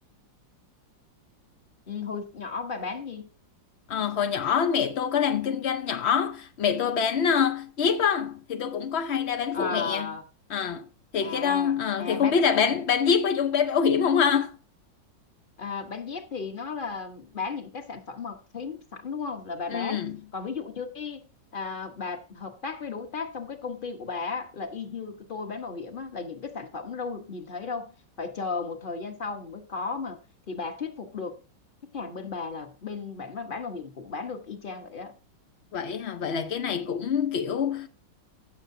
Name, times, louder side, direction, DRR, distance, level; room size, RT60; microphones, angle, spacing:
voice 1, 1.9-3.3 9.5-10.2 11.2-12.4 15.6-20.0 20.3-21.2 21.5-30.2 30.5-31.4 31.9-35.1, left 4 dB, 30° left, 1.1 m, -35 dB
voice 2, 3.9-10.1 10.5-10.8 11.1-14.5 19.7-20.2 35.7-37.9, left 7 dB, 70° left, 0.6 m, -25 dB
16.0 x 6.8 x 2.7 m
omnidirectional pair, 2.0 m